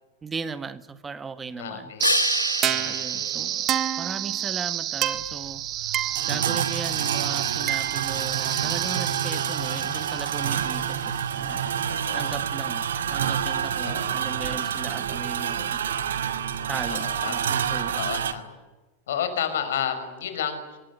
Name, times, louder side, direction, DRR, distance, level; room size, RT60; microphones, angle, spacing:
voice 1, 0.2-1.9 2.8-3.7 4.0-5.6 6.3-11.7 12.1-15.8 16.7-18.1, right 5 dB, 15° right, 13 dB, 1.7 m, -37 dB
voice 2, 1.6-2.0 2.6-3.7 11.9-12.3 13.8-14.1 16.9-17.5 18.0-18.5 19.1-20.8, left 8 dB, 60° left, 9 dB, 5.6 m, -32 dB
sound 1, 2.0-4.6 10.3-14.3, left 3 dB, 80° left, 1.3 m, -33 dB
sound 2, 2.0-11.0, right 12 dB, 30° right, 1.7 m, -29 dB
sound 3, 5.1-18.3, right 8 dB, 65° right, 1.9 m, -28 dB
25.0 x 20.5 x 9.9 m, 1.2 s
figure-of-eight pair, 90°, 0 cm